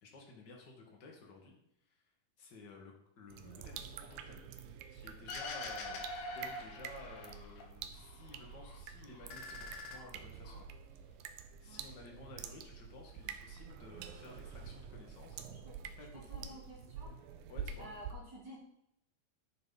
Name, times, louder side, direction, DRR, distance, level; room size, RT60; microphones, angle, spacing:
voice 1, 0.0-1.6 1.9-2.0 2.4-4.4 4.9-10.7 11.0-11.3 11.6-15.4 16.0-16.6 17.5-17.9, left 3 dB, 35° left, 0 dB, 2.2 m, -54 dB
sound 1, 3.3-18.1, right 7 dB, 75° right, 2.5 m, -48 dB
sound 2, 5.3-7.6 8.0-8.8 9.1-10.6, left 2 dB, 60° left, 2.8 m, -44 dB
voice 2, 15.6-17.1 17.8-18.7, right 1 dB, 30° right, -3 dB, 2.7 m, -52 dB
11.0 x 9.5 x 4.2 m, 0.79 s
omnidirectional pair, 4.3 m